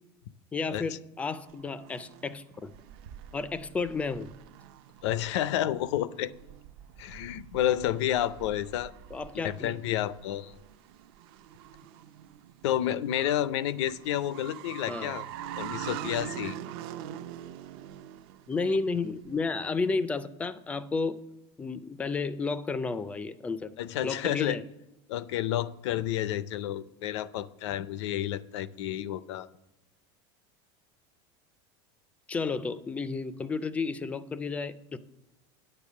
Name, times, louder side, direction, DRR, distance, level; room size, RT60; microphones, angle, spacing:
voice 1, 0.5-2.7 3.3-4.3 9.1-9.8 14.9-15.2 18.5-21.2 21.6-23.7 24.0-24.6 32.3-35.0, left 4 dB, 10° left, 14 dB, 0.3 m, -32 dB
sound 1, 1.4-19.5, right 11 dB, 60° right, 0.5 m, -44 dB
voice 2, 5.0-6.3 7.0-8.9 9.3-10.6 12.6-15.3 15.6-16.6 23.8-24.6 25.1-29.5, left 12 dB, 85° left, 16 dB, 0.6 m, -30 dB
10.0 x 6.8 x 7.2 m, 0.94 s
supercardioid pair, 170°, 14 cm